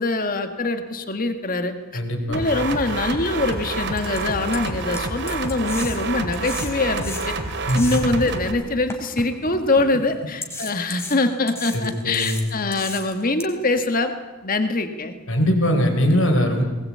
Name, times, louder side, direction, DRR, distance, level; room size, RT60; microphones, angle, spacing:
voice 1, 0.0-2.0 2.3-7.4 7.7-14.1 14.4-15.1, left 2 dB, 40° left, 7 dB, 1.8 m, -23 dB
voice 2, 1.9-2.5 7.7-8.0 11.7-12.5 15.3-16.6, equal, 65° left, 4 dB, 4.6 m, -21 dB
sound 1, 2.3-8.5, right 3 dB, 55° right, 2.7 m, -28 dB
sound 2, 3.0-3.1 3.5-3.6 4.0-8.3 8.9-9.9 10.4-13.4, left 2 dB, 10° left, 3.2 m, -35 dB
20.5 x 20.0 x 8.6 m, 1.3 s
head